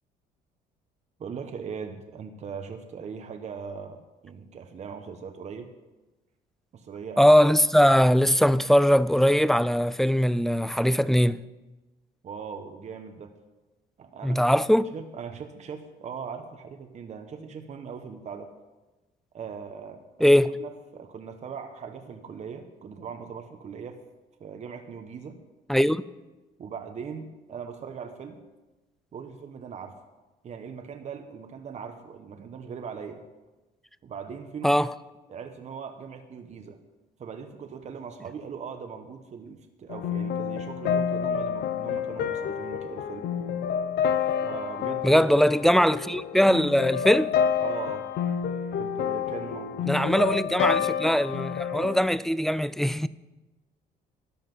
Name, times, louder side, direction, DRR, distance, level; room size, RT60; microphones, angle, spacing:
voice 1, 1.2-5.7 6.7-7.3 12.2-13.3 14.0-14.6 14.9-18.5 19.3-24.0 24.4-25.4 26.6-28.4 29.1-30.0 30.4-33.2 34.0-34.8 35.3-36.8 37.2-43.3 44.4-45.3 47.6-48.1 48.7-50.1, right 6 dB, 45° right, 1.1 m, -40 dB
voice 2, 7.2-11.4 14.2-14.9 20.2-20.6 25.7-26.0 34.6-34.9 45.0-47.3 49.9-53.1, equal, ahead, 0.4 m, -21 dB
sound 1, 39.9-52.0, left 7 dB, 75° left, 0.9 m, -29 dB
13.5 x 10.0 x 5.4 m
cardioid pair, 110°, 17 cm